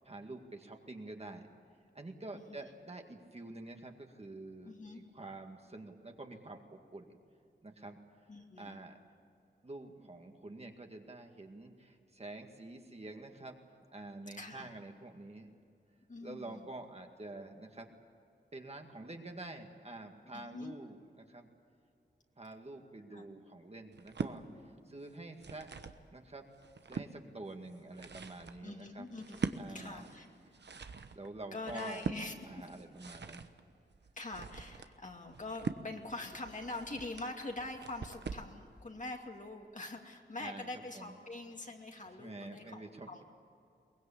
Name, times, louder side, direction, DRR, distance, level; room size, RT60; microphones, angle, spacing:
voice 1, 0.0-1.5 1.9-7.2 7.6-8.0 8.6-9.0 9.6-13.6 13.9-15.5 16.2-17.9 18.5-21.5 22.4-25.7 26.1-26.5 26.9-29.1 29.6-30.0 31.1-32.0 32.5-33.5 40.4-40.7 40.9-41.2 42.2-43.2, right 2 dB, 35° right, 3 dB, 2.1 m, -47 dB
voice 2, 2.3-2.6 4.6-5.0 8.3-8.9 14.4-14.7 16.1-16.7 20.3-20.7 23.1-23.3 28.6-30.3 30.8-30.9 31.5-32.6 34.2-43.2, left 2 dB, 45° left, 2 dB, 2.6 m, -44 dB
sound 1, 23.9-24.4 25.1-26.0 26.5-27.1 27.7-38.5, right 5 dB, 70° right, 1.1 m, -43 dB
22.5 x 20.0 x 8.6 m, 2.5 s
wide cardioid pair, 90°, 18 cm